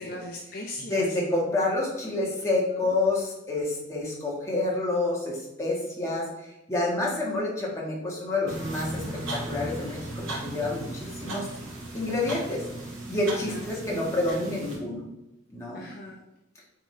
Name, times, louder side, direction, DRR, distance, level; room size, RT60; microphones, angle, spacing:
voice 1, 0.0-1.4 2.4-2.5 2.8-3.0 13.3-13.7 15.7-16.2, left 1 dB, 45° left, -1 dB, 0.7 m, -40 dB
voice 2, 0.9-6.3 6.7-9.0 9.3-10.0 10.4-11.5 11.9-12.6 13.1-15.0 15.5-15.8, left 2 dB, 15° left, -4 dB, 1.5 m, -28 dB
sound 1, 8.5-14.8, right 1 dB, 75° right, 2.3 m, -36 dB
8.8 x 3.8 x 3.3 m, 0.93 s
head